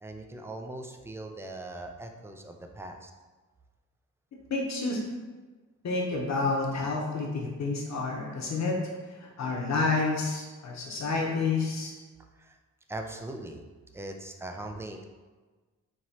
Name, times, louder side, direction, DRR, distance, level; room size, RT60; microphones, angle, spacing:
voice 1, 0.0-3.1 12.4-12.6 12.9-13.6 13.9-15.0, right 2 dB, 10° right, 4 dB, 0.3 m, -40 dB
voice 2, 4.5-5.0 5.8-8.8 9.2-11.9, left 3 dB, 60° left, -1 dB, 0.9 m, -29 dB
4.6 x 2.9 x 2.8 m, 1.3 s
cardioid pair, 115°, 31 cm